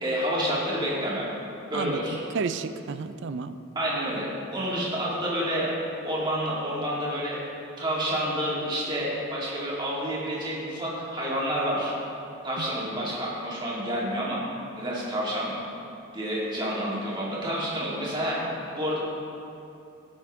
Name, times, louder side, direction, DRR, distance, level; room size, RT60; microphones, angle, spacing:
voice 1, 0.0-1.3 1.7-2.2 3.7-5.7 6.0-7.4 7.8-11.9 12.4-14.4 14.8-15.5 16.1-18.4 18.8-19.0, equal, 20° right, -6 dB, 2.1 m, -29 dB
voice 2, 1.7-3.6 12.6-12.7, right 5 dB, 55° right, 11 dB, 0.4 m, -32 dB
16.5 x 6.2 x 3.6 m, 2.7 s
head